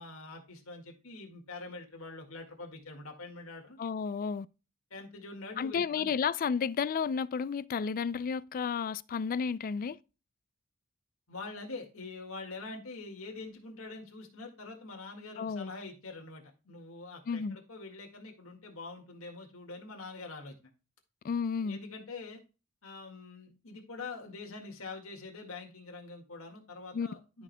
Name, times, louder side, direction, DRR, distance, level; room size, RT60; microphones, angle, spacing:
voice 1, 0.0-3.8 4.9-6.1 11.3-20.5 21.6-22.4 22.8-27.4, left 3 dB, 75° left, 1.9 m, -45 dB
voice 2, 3.8-4.5 5.6-10.0 15.4-15.7 17.3-17.6 21.2-21.8 26.9-27.1, left 6 dB, 40° left, 0.3 m, -32 dB
13.5 x 4.9 x 2.2 m
head